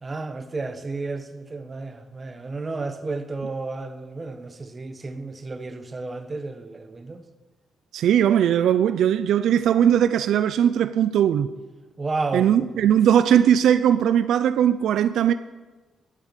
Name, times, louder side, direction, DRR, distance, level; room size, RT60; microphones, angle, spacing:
voice 1, 0.0-7.2 12.0-12.7, right 3 dB, 20° right, 1.2 m, -32 dB
voice 2, 7.9-11.5 12.3-15.3, right 9 dB, 70° right, 0.5 m, -19 dB
11.5 x 8.8 x 9.7 m
cardioid pair, 155°, 0 cm